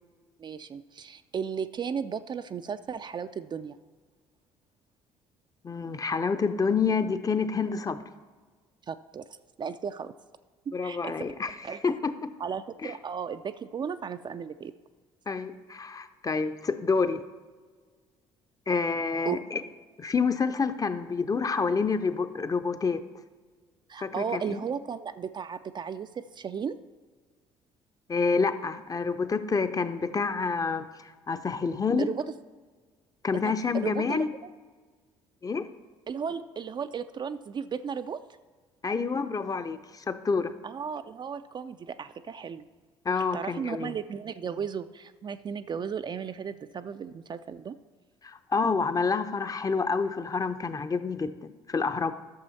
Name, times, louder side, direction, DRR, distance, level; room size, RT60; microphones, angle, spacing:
voice 1, 0.4-3.8 8.9-9.2 9.6-10.1 10.8-11.1 11.6-11.9 12.4-14.7 19.3-19.4 23.9-26.8 32.0-32.2 33.4-34.2 36.1-38.2 40.6-42.7 43.1-47.8, right 6 dB, 30° right, 11 dB, 0.4 m, -35 dB
voice 2, 5.6-8.0 10.7-11.5 11.8-12.1 12.8-12.9 15.3-17.2 18.7-19.6 20.0-23.0 24.0-24.6 28.1-32.1 33.2-34.3 35.4-35.7 38.8-40.5 43.0-44.0 48.2-52.1, left 5 dB, 25° left, 10 dB, 0.7 m, -28 dB
12.5 x 6.8 x 4.1 m, 1.5 s
figure-of-eight pair, 50°, 15 cm